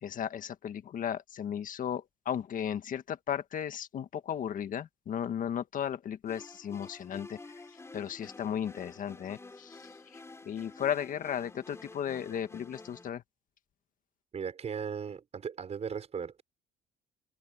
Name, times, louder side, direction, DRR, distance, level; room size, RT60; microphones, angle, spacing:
voice 1, 0.0-7.4 7.9-10.2 10.5-13.2, left 9 dB, 50° left, 1.7 m, -35 dB
sound 1, 6.3-13.1, left 3 dB, 15° left, 3.6 m, -50 dB
voice 2, 14.3-16.4, right 6 dB, 40° right, 5.3 m, -37 dB
cardioid pair, 110°, 17 cm